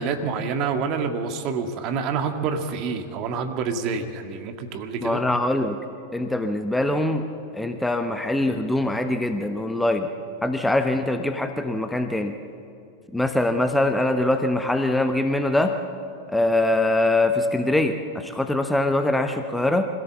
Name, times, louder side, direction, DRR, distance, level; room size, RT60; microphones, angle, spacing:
voice 1, 0.0-5.2, right 5 dB, 40° right, 6 dB, 1.8 m, -27 dB
voice 2, 5.0-5.8 6.1-7.3 7.5-10.1 10.4-12.4 13.1-15.8 16.3-19.9, left 1 dB, 5° left, 7 dB, 1.0 m, -23 dB
25.0 x 16.5 x 7.3 m, 2.5 s
figure-of-eight pair, 90°, 0 cm